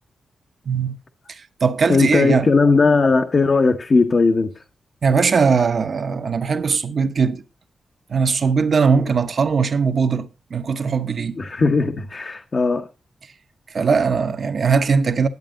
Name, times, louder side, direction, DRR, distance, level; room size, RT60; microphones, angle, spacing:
voice 1, 0.6-1.0 1.3-2.5 5.0-7.4 8.1-11.4 13.7-15.3, right 5 dB, 50° right, 0.9 m, -20 dB
voice 2, 1.9-4.6 11.4-12.9, left 4 dB, 40° left, 0.9 m, -18 dB
11.0 x 8.5 x 3.8 m
wide cardioid pair, 135°, 0 cm